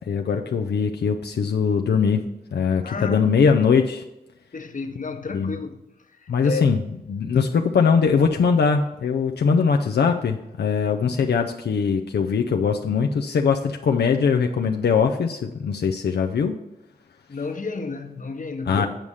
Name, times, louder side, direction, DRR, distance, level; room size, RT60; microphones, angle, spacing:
voice 1, 0.1-2.2 2.5-4.0 5.3-5.6 6.3-6.8 7.1-16.6 18.7-18.9, left 6 dB, 90° left, 0.5 m, -21 dB
voice 2, 2.8-3.3 4.5-5.9 6.2-6.8 17.3-18.9, left 4 dB, 50° left, 1.0 m, -31 dB
8.9 x 4.8 x 5.5 m
cardioid pair, 50°, 17 cm